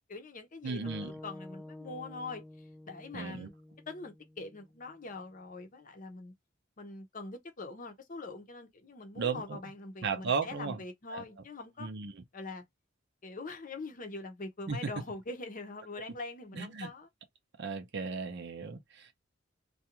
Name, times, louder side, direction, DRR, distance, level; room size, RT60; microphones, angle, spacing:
voice 1, 0.1-3.5 3.9-6.3 6.8-11.9 12.3-12.6 13.2-17.1, left 3 dB, 45° left, 0.7 m, -43 dB
voice 2, 0.6-1.1 3.1-3.5 9.2-9.6 10.0-10.8 11.1-11.2 11.8-12.2 14.7-14.8 16.5-16.9 17.6-19.1, right 5 dB, 60° right, 0.6 m, -35 dB
sound 1, 0.9-5.1, left 1 dB, ahead, 0.3 m, -50 dB
2.4 x 2.3 x 2.9 m
head